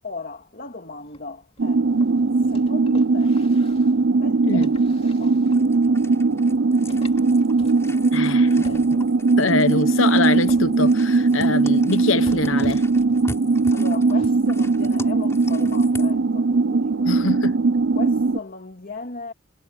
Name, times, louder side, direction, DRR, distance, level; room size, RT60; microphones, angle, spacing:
voice 1, 0.0-1.8 2.5-3.4 4.2-4.7 5.0-5.4 13.7-17.1 17.9-19.3, left 3 dB, 50° left, 2.4 m, -36 dB
sound 1, 1.0-4.0 4.6-5.7 6.1-6.2 6.5-6.6 6.9-8.4 8.6-9.3 9.8-10.0 10.5-11.6 11.9-13.3 13.8-14.3 14.8-14.9, left 2 dB, 30° left, 2.7 m, -46 dB
sound 2, 1.6-18.4, right 3 dB, 65° right, 0.6 m, -19 dB
sound 3, 5.5-16.2, left 1 dB, 15° left, 5.5 m, -42 dB
voice 2, 8.1-9.0 9.4-12.8 17.0-17.6, left 3 dB, 90° left, 1.1 m, -24 dB
head